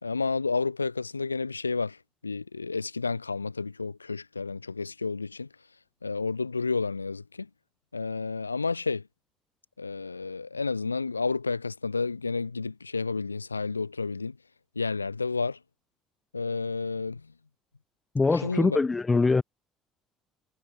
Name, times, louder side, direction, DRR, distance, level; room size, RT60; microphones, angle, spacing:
voice 1, 0.0-2.0 2.2-5.5 6.0-7.5 7.9-9.0 9.8-14.4 14.7-15.6 16.3-17.2 18.4-18.8, left 4 dB, 90° left, 1.0 m, -30 dB
voice 2, 18.1-19.4, left 3 dB, 20° left, 2.9 m, -23 dB
figure-of-eight pair, 55°, 0 cm